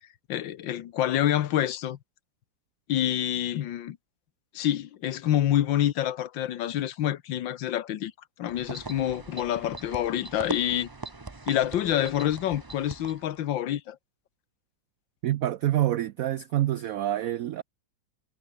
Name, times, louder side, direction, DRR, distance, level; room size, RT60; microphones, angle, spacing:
voice 1, 0.3-2.0 2.9-4.0 4.5-8.1 8.4-10.9 11.5-14.0, left 11 dB, 75° left, 1.7 m, -27 dB
sound 1, 8.5-13.4, right 3 dB, 20° right, 0.6 m, -41 dB
voice 2, 15.2-17.6, right 13 dB, 85° right, 0.7 m, -27 dB
omnidirectional pair, 2.1 m